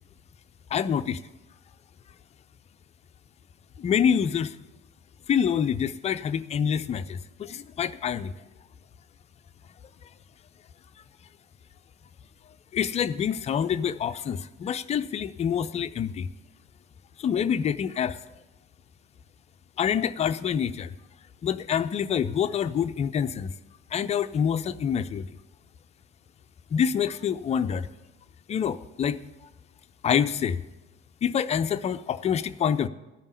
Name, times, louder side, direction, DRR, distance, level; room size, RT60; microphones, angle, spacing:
voice 1, 0.7-1.2 3.8-4.6 5.3-8.3 12.7-16.3 17.2-18.2 19.8-20.9 21.4-23.5 23.9-25.3 26.7-27.9 28.5-29.2 30.0-30.6 31.2-32.9, left 8 dB, 20° left, 12 dB, 0.4 m, -26 dB
13.5 x 5.3 x 8.3 m, 1.1 s
figure-of-eight pair, 60°, 36 cm